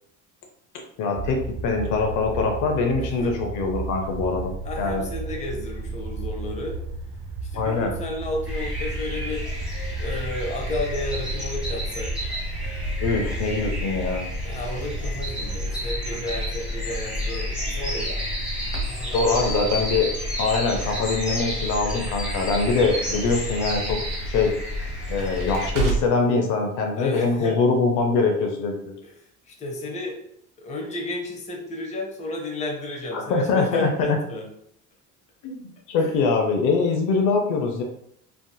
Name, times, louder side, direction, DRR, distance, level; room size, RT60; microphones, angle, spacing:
voice 1, 1.0-5.0 7.5-7.9 13.0-14.3 19.1-20.1 20.4-24.0 24.3-24.5 25.1-28.9 33.1-34.2 35.4-37.8, left 4 dB, 65° left, 3 dB, 0.6 m, -23 dB
sound 1, 1.2-15.7, right 3 dB, 35° right, 0.4 m, -34 dB
voice 2, 3.0-3.3 4.6-6.8 7.4-9.4 10.0-12.1 14.4-18.3 18.8-19.8 26.9-27.6 29.0-29.1 29.5-30.2 30.6-34.5 36.0-36.1, left 1 dB, 20° left, 0 dB, 0.7 m, -32 dB
sound 2, 8.4-25.7, left 1 dB, 5° right, 1.1 m, -30 dB
Crackle, 15.4-26.3, right 4 dB, 70° right, 1.0 m, -36 dB
3.4 x 2.6 x 2.2 m, 0.72 s
cardioid pair, 130°, 34 cm